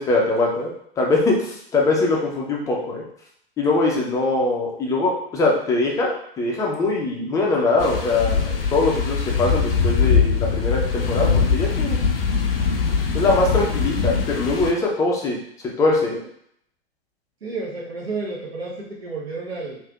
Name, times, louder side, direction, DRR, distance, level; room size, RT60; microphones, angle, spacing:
voice 1, 0.0-3.0 3.6-12.0 13.1-15.4 15.8-16.2, left 3 dB, 10° left, -1 dB, 0.4 m, -22 dB
sound 1, 7.8-14.7, left 5 dB, 65° left, 0.5 m, -22 dB
voice 2, 17.4-19.8, right 3 dB, 75° right, -4 dB, 0.9 m, -31 dB
3.2 x 2.5 x 2.4 m, 0.68 s
figure-of-eight pair, 95°, 31 cm